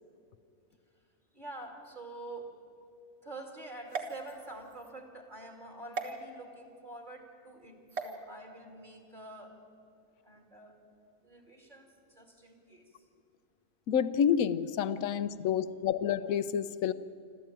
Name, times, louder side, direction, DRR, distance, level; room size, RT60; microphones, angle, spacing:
voice 1, 1.3-2.5 3.2-9.5 10.2-10.8 11.2-13.0, right 2 dB, 30° right, 2 dB, 2.6 m, -47 dB
sound 1, 3.9-4.9 5.9-6.1 7.9-8.2, right 4 dB, 45° right, 1.8 m, -38 dB
voice 2, 13.9-16.9, left 8 dB, 70° left, 14 dB, 1.1 m, -29 dB
27.0 x 13.5 x 9.1 m, 2.5 s
omnidirectional pair, 1.6 m